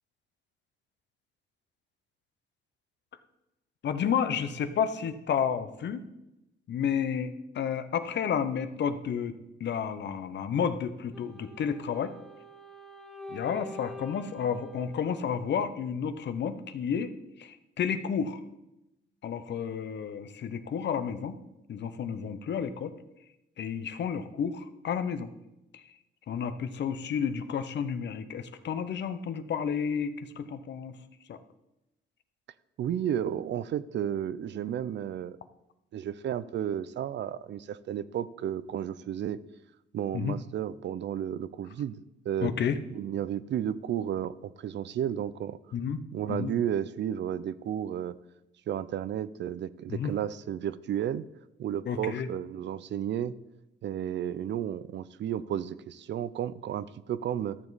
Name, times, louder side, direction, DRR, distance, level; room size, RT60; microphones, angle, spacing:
voice 1, 3.8-6.0 6.7-9.3 9.6-12.1 13.3-17.1 17.4-18.4 19.2-21.3 21.7-22.9 23.6-25.3 25.7-25.8 26.3-31.0 31.3-31.4 40.1-40.4 42.4-42.8 45.7-46.0 46.3-46.5 49.9-50.1 51.9-52.3, left 7 dB, 65° left, 11 dB, 0.8 m, -31 dB
Wind instrument woodwind instrument, 11.1-16.2, left 1 dB, ahead, 0.8 m, -47 dB
voice 2, 32.8-35.4 35.9-39.4 39.9-42.5 42.9-45.6 46.1-48.2 48.7-51.3 51.6-53.4 53.8-57.6, right 10 dB, 65° right, 17 dB, 0.5 m, -32 dB
13.5 x 7.1 x 4.1 m, 0.91 s
cardioid pair, 100°, 20 cm